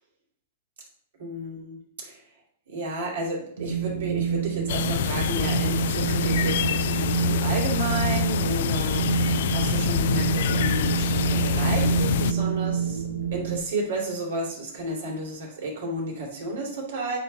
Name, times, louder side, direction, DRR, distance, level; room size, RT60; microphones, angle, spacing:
voice 1, 1.2-2.2 2.7-13.0 13.3-17.2, right 1 dB, 70° right, -1 dB, 2.9 m, -32 dB
Wind, 3.6-13.6, right 8 dB, 85° right, 0.7 m, -27 dB
sound 1, 4.7-12.3, left 10 dB, 65° left, 0.4 m, -26 dB
8.3 x 5.8 x 4.0 m, 0.63 s
hypercardioid pair, 110°, 0 cm